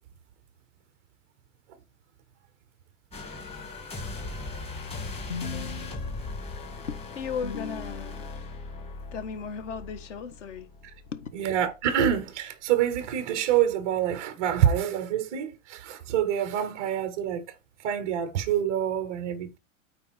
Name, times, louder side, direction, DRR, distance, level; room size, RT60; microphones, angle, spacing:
sound 1, 3.1-11.3 11.7-11.9, left 3 dB, 15° left, 2.1 m, -39 dB
voice 1, 5.3-6.4 6.8-8.5 9.1-10.7 11.1-11.3, left 6 dB, 60° left, 1.6 m, -36 dB
voice 2, 11.3-17.4 17.8-19.6, right 10 dB, 10° right, 0.3 m, -26 dB
9.0 x 4.3 x 4.3 m
hypercardioid pair, 145°, 41 cm